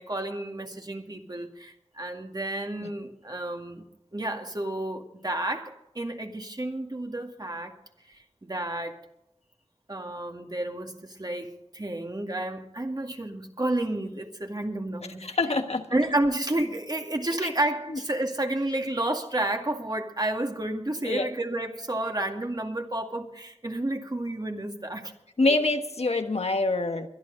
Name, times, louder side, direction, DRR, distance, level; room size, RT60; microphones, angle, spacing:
voice 1, 0.0-3.8 4.1-7.7 8.1-9.0 9.9-15.3 15.9-25.1, right 1 dB, 35° right, 2.2 m, -31 dB
voice 2, 15.0-15.9 17.4-17.5 17.9-18.0 21.0-21.3 25.4-27.1, left 2 dB, 70° left, 1.4 m, -26 dB
22.5 x 11.5 x 4.0 m
wide cardioid pair, 45°, 11 cm